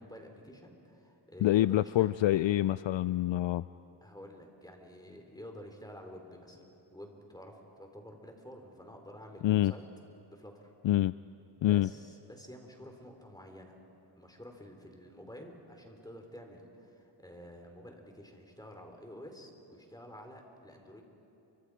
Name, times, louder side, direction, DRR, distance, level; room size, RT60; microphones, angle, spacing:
voice 1, 0.0-2.1 4.0-6.6 6.9-9.8 10.3-10.7 11.6-13.8 14.1-21.0, equal, 10° left, 3 dB, 4.2 m, -50 dB
voice 2, 1.4-3.6 9.4-9.7 10.8-11.1 11.6-11.9, left 14 dB, 65° left, 16 dB, 0.5 m, -26 dB
30.0 x 25.5 x 5.0 m, 2.9 s
cardioid pair, 70°, 49 cm